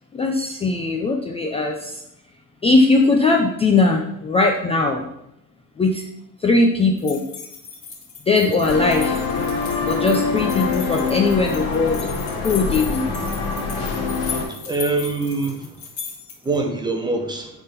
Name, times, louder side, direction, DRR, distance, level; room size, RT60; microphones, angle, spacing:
voice 1, 0.1-2.0 2.6-5.1 5.8-6.0 6.4-7.2 8.3-9.3 9.9-12.1 12.4-13.1, left 3 dB, 15° left, 0 dB, 0.4 m, -19 dB
sound 1, 7.0-16.6, left 5 dB, 35° left, 2.4 m, -37 dB
sound 2, 8.6-14.4, left 5 dB, 60° left, 2.8 m, -25 dB
voice 2, 14.7-15.7 16.4-17.5, right 3 dB, 10° right, 3 dB, 0.8 m, -23 dB
9.7 x 3.7 x 5.8 m, 0.80 s
cardioid pair, 180°, 40 cm